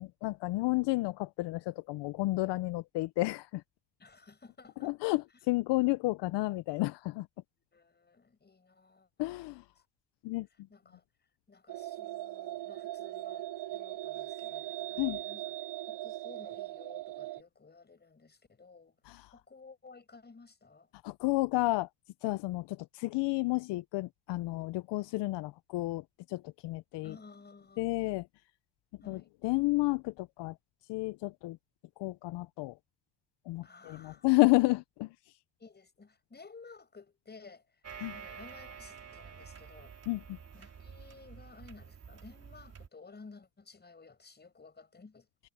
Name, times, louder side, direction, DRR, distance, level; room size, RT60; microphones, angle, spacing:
voice 1, 0.0-3.6 4.8-7.3 9.2-9.6 10.2-10.5 15.0-15.2 19.1-19.2 21.0-21.9 22.2-27.1 27.8-28.3 29.1-30.5 30.9-31.6 32.0-32.7 33.5-35.1 38.0-38.1 40.1-40.4, left 21 dB, 70° left, 0.7 m, -31 dB
voice 2, 4.0-5.2 7.7-9.3 9.8-9.9 10.5-15.6 15.9-19.0 19.3-20.9 27.0-27.8 29.0-29.3 33.6-34.3 35.6-37.8 38.1-40.0 40.5-45.3, left 4 dB, 20° left, 6.0 m, -55 dB
sound 1, 11.7-17.4, right 14 dB, 65° right, 3.5 m, -40 dB
sound 2, 37.8-42.9, right 6 dB, 35° right, 3.8 m, -49 dB
cardioid pair, 100°, 44 cm